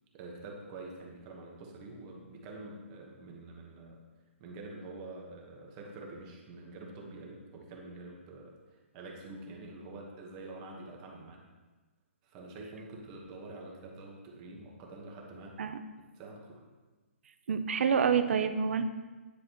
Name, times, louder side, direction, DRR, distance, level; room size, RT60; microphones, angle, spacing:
voice 1, 0.1-4.0 4.4-11.4 12.2-15.5 16.1-16.6, right 2 dB, 30° right, -1 dB, 1.3 m, -46 dB
voice 2, 17.5-18.8, right 6 dB, 65° right, 9 dB, 0.6 m, -27 dB
9.8 x 4.8 x 3.1 m, 1.3 s
hypercardioid pair, 155°, 7 cm